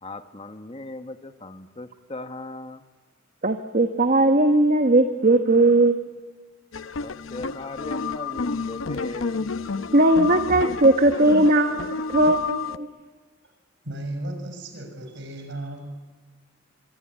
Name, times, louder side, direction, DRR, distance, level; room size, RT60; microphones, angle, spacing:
voice 1, 0.0-2.8 7.0-9.4, left 2 dB, 30° left, 8 dB, 1.1 m, -38 dB
voice 2, 3.4-6.0 9.9-12.9, right 2 dB, 45° right, 6 dB, 1.3 m, -19 dB
sound 1, 6.7-12.8, left 4 dB, 90° left, 0.8 m, -30 dB
voice 3, 13.8-15.9, right 1 dB, 65° right, 6 dB, 6.6 m, -34 dB
24.5 x 24.5 x 9.8 m, 1.4 s
head